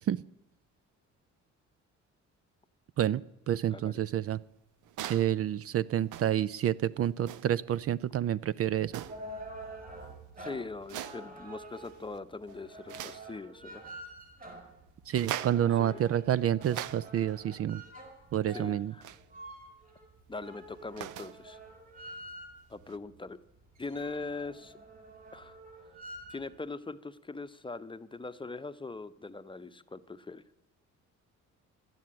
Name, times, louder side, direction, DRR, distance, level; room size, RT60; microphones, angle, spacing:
voice 1, 3.5-4.4 5.1-9.0 15.1-17.8 18.3-18.9, right 10 dB, 50° right, 19 dB, 0.5 m, -29 dB
sound 1, 4.8-5.4 6.0-6.5 7.2-7.6 8.9-9.3 10.8-11.3 11.8-12.2 12.5-13.3 15.1-15.7 16.3-17.3 19.0-19.2 20.7-21.4 22.9-23.0, right 12 dB, 85° right, 0.7 m, -41 dB
sound 2, 8.8-22.8 23.3-23.4 23.6-26.5, right 1 dB, 30° right, 6.2 m, -48 dB
voice 2, 10.4-13.8 15.8-16.0 18.5-19.1 20.3-21.6 22.7-23.4 23.8-24.7 25.3-25.6 26.3-30.4, left 3 dB, 15° left, 11 dB, 0.8 m, -41 dB
12.0 x 9.4 x 8.7 m, 0.83 s
cardioid pair, 90°, 30 cm